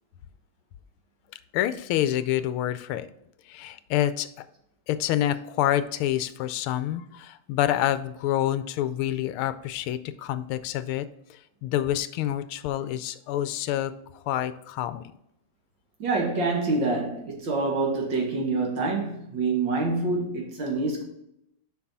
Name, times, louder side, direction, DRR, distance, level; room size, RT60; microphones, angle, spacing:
voice 1, 1.5-3.1 3.5-4.3 4.9-15.0, left 12 dB, 80° left, 1.4 m, -27 dB
voice 2, 16.0-21.0, right 3 dB, 60° right, 2.2 m, -26 dB
6.9 x 5.3 x 4.1 m
omnidirectional pair, 2.4 m